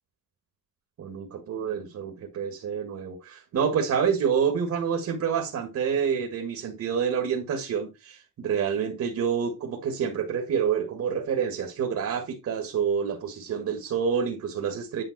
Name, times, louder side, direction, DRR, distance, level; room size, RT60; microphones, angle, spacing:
voice 1, 1.0-15.0, right 7 dB, 55° right, 1.8 m, -28 dB
9.1 x 5.3 x 4.1 m
cardioid pair, 160°, 33 cm